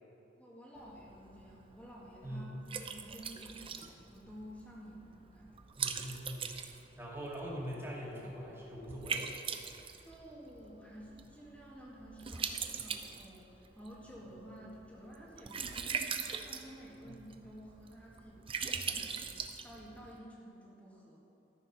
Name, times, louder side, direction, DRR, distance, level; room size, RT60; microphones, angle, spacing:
voice 1, 0.4-5.6 10.0-19.2 19.6-21.2, equal, 10° left, -5 dB, 1.8 m, -52 dB
Liquid, 0.8-20.2, right 6 dB, 30° right, 0.6 m, -42 dB
voice 2, 5.8-6.6 7.0-9.5 17.0-17.1, equal, 15° right, -5 dB, 2.3 m, -43 dB
13.5 x 7.0 x 5.9 m, 3.0 s
head